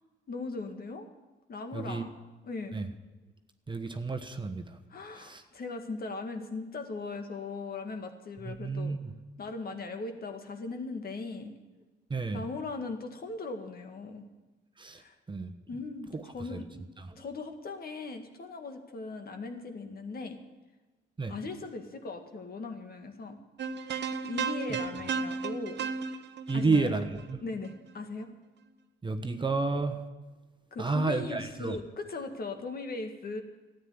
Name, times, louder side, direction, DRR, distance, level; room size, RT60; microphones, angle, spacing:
voice 1, 0.3-1.1 1.5-2.1 2.4-2.8 4.9-9.0 9.4-11.5 12.3-14.3 15.0-15.1 15.7-16.7 17.2-20.4 21.3-23.4 24.2-25.9 26.5-26.9 27.4-28.3 30.7-33.4, left 3 dB, 50° left, 6 dB, 1.9 m, -39 dB
voice 2, 1.7-2.1 2.7-2.9 3.7-4.8 5.1-5.4 8.4-9.1 12.1-12.4 14.8-15.0 15.3-15.5 16.1-16.2 16.5-16.7 17.0-17.2 21.2-21.3 24.7-24.8 26.5-27.4 29.0-30.0 30.8-31.8, right 3 dB, 25° right, 7 dB, 1.2 m, -31 dB
sound 1, 23.6-27.9, right 5 dB, 60° right, 1.0 m, -34 dB
13.0 x 9.3 x 9.6 m, 1.2 s
cardioid pair, 90°, 20 cm